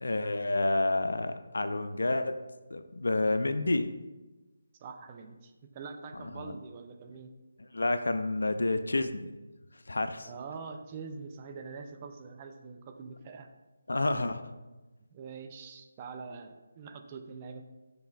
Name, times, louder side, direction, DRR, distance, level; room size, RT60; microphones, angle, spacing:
voice 1, 0.0-2.4 2.7-3.9 6.1-6.6 7.6-9.3 9.9-10.3 13.9-14.4, left 2 dB, 70° left, 10 dB, 0.3 m, -29 dB
voice 2, 4.8-7.3 10.2-13.5 15.1-17.7, right 5 dB, 25° right, 5 dB, 0.4 m, -44 dB
7.1 x 3.2 x 2.2 m, 1.2 s
figure-of-eight pair, 155°, 0 cm